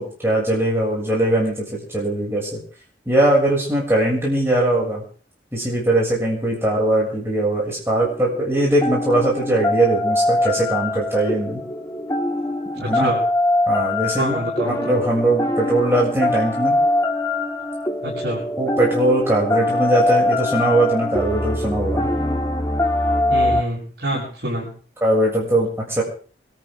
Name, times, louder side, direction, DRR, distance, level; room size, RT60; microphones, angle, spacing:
voice 1, 0.0-2.6 3.1-5.0 5.5-11.6 12.8-13.1 13.7-16.8 18.6-22.1 25.0-26.0, right 1 dB, 15° right, -4 dB, 7.0 m, -20 dB
sound 1, 8.0-23.6, left 1 dB, 20° left, 1.7 m, -23 dB
voice 2, 12.7-13.2 14.2-14.9 18.0-18.4 23.3-24.7, right 1 dB, 65° right, -7 dB, 7.6 m, -27 dB
25.5 x 13.5 x 3.8 m, 0.43 s
head